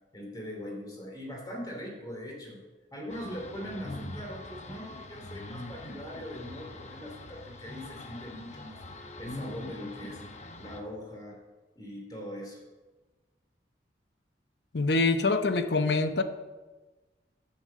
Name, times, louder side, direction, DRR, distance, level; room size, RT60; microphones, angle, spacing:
voice 1, 0.1-2.6 2.9-10.2 10.6-11.4 11.8-12.6, equal, 20° left, -1 dB, 2.6 m, -41 dB
sound 1, 3.1-10.8, left 2 dB, 40° left, 0.9 m, -43 dB
voice 2, 14.7-16.2, left 3 dB, 70° left, 10 dB, 0.8 m, -25 dB
9.8 x 6.5 x 7.7 m, 1.2 s
head